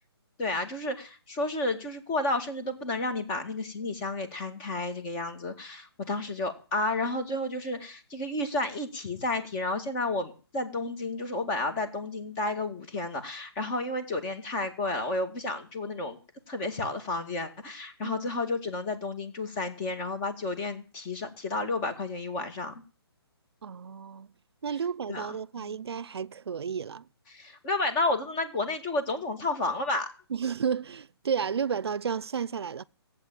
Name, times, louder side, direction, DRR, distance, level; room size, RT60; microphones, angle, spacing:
voice 1, 0.4-16.2 16.5-22.7 25.1-25.8 27.3-30.1, left 2 dB, 20° left, 2.0 m, -31 dB
voice 2, 23.6-24.3 24.6-27.0 30.3-32.8, right 7 dB, 75° right, 0.7 m, -32 dB
16.0 x 8.3 x 9.0 m
hypercardioid pair, 165°, 13 cm